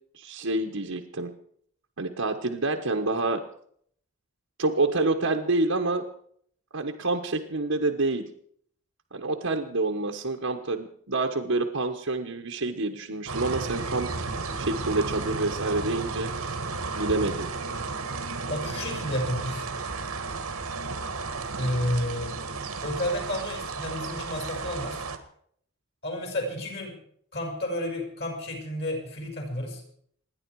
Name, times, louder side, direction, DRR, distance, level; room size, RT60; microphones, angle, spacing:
voice 1, 0.1-1.3 2.0-3.4 4.6-6.0 6.7-8.3 9.1-14.1 14.6-16.5 16.9-17.5, right 2 dB, 70° right, 2 dB, 1.3 m, -27 dB
sound 1, 13.3-25.2, right 4 dB, 90° right, 1.9 m, -33 dB
voice 2, 18.5-19.6 21.6-22.3 22.8-25.0 26.0-26.9 27.3-29.8, left 1 dB, 50° left, 2 dB, 5.8 m, -31 dB
27.5 x 10.5 x 4.8 m, 0.63 s
head